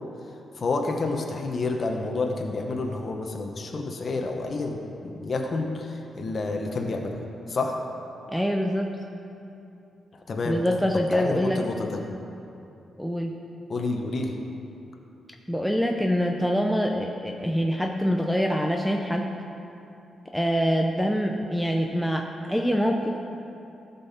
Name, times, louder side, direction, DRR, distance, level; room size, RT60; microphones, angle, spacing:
voice 1, 0.6-7.2 7.5-7.8 10.3-10.6 11.1-12.0 13.7-14.3, left 3 dB, 50° left, 2 dB, 1.0 m, -29 dB
voice 2, 8.3-8.9 10.4-11.6 13.0-13.3 15.5-19.3 20.3-23.2, equal, ahead, 1 dB, 0.6 m, -25 dB
13.5 x 5.5 x 4.3 m, 2.7 s
cardioid pair, 80°, 0 cm